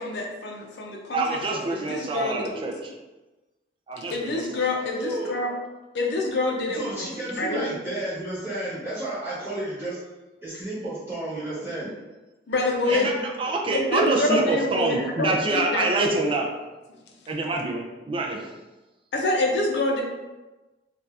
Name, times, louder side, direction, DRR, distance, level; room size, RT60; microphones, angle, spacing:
voice 1, 0.0-2.7 4.1-5.5 5.9-7.1 7.4-7.6 12.5-13.1 13.7-16.1 19.1-20.0, left 2 dB, 70° left, 1 dB, 0.5 m, -26 dB
voice 2, 1.1-2.9 3.9-4.6 12.9-16.5 17.3-18.4, right 2 dB, 30° right, 0 dB, 0.4 m, -26 dB
voice 3, 5.0-5.3 6.7-10.0 10.4-11.9 12.9-13.1, right 1 dB, 15° right, -11 dB, 1.1 m, -32 dB
2.7 x 2.4 x 3.2 m, 1.1 s
head